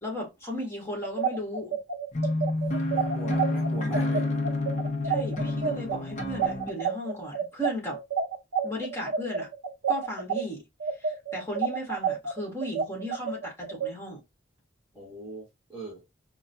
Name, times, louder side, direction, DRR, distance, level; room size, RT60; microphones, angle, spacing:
voice 1, 0.0-1.8 5.0-8.0 8.6-9.5 9.9-10.6 11.0-14.2, equal, 15° left, 1.6 m, -35 dB
sound 1, 1.0-10.4 10.8-13.9, right 6 dB, 90° right, 0.6 m, -29 dB
sound 2, 2.1-6.7, left 2 dB, 40° left, 0.7 m, -29 dB
voice 2, 2.9-4.3 14.9-16.0, right 1 dB, 10° right, 1.6 m, -40 dB
4.5 x 2.2 x 2.7 m
head